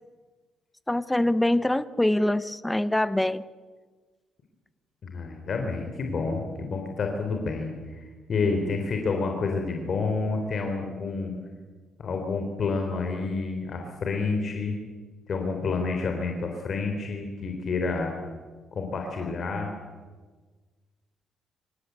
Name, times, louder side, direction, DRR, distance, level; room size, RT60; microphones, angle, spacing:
voice 1, 0.9-3.4, left 1 dB, 10° left, 15 dB, 0.9 m, -24 dB
voice 2, 5.0-11.3 12.0-14.8 15.3-18.2 18.7-19.7, left 4 dB, 50° left, 3 dB, 3.7 m, -29 dB
26.5 x 17.0 x 8.2 m, 1.4 s
cardioid pair, 90°, 0 cm